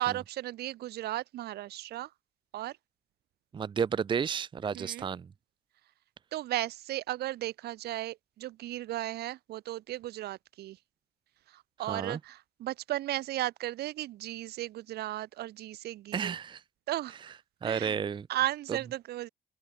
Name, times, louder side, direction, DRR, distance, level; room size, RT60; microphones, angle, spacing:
voice 1, 0.0-2.1 2.5-2.8 4.7-5.1 6.3-10.8 11.5-16.4 16.9-17.3 17.6-18.0 18.3-19.3, right 15 dB, 70° right, 1.9 m, -35 dB
voice 2, 3.5-5.3 11.9-12.2 16.1-16.6 17.6-18.3, right 7 dB, 30° right, 0.6 m, -31 dB
open air
cardioid pair, 110°, 17 cm